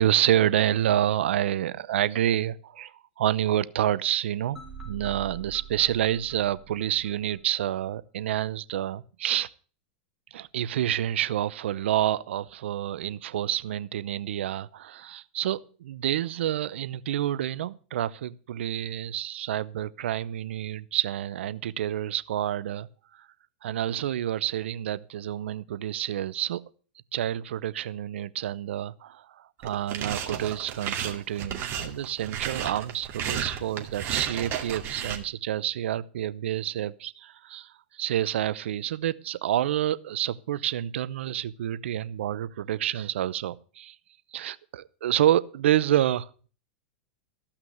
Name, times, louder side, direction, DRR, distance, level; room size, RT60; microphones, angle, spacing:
voice 1, 0.0-4.6 4.8-9.5 10.3-23.3 23.6-26.6 27.1-44.0 44.3-46.3, right 12 dB, 80° right, 0.7 m, -28 dB
sound 1, 4.6-7.6, right 6 dB, 10° right, 4.1 m, -44 dB
sound 2, 29.6-35.2, right 8 dB, 40° right, 2.3 m, -33 dB
14.5 x 5.9 x 7.9 m
hypercardioid pair, 120°, 6 cm